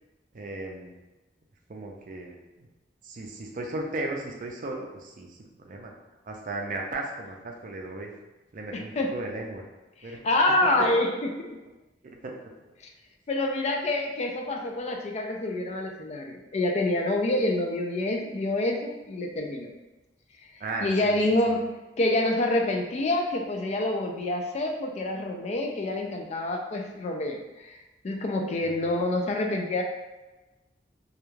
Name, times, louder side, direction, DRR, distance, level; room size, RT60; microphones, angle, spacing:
voice 1, 0.3-0.9 1.7-2.7 3.0-5.9 6.2-8.1 8.5-9.7 10.0-10.2 12.0-12.3 12.7-12.8 20.6-21.2 21.5-21.6 28.6-28.7, right 2 dB, 45° right, 1 dB, 0.4 m, -36 dB
voice 2, 8.7-9.1 10.2-11.6 13.3-19.7 20.4-20.5 20.8-21.6 22.0-27.8 28.0-29.8, left 1 dB, 40° left, 2 dB, 0.3 m, -27 dB
2.3 x 2.2 x 3.1 m, 1.1 s
head